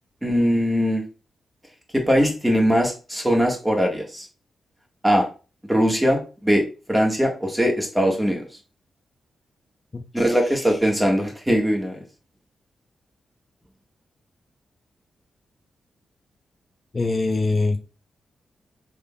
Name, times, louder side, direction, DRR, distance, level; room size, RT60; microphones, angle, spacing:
voice 1, 0.2-1.0 1.9-4.2 5.0-5.3 5.7-8.4 10.1-12.0, equal, 10° right, 0 dB, 1.4 m, -21 dB
voice 2, 9.9-10.8 16.9-17.8, left 3 dB, 40° left, 5 dB, 0.5 m, -25 dB
3.7 x 3.3 x 2.2 m, 0.34 s
supercardioid pair, 40°, 0 cm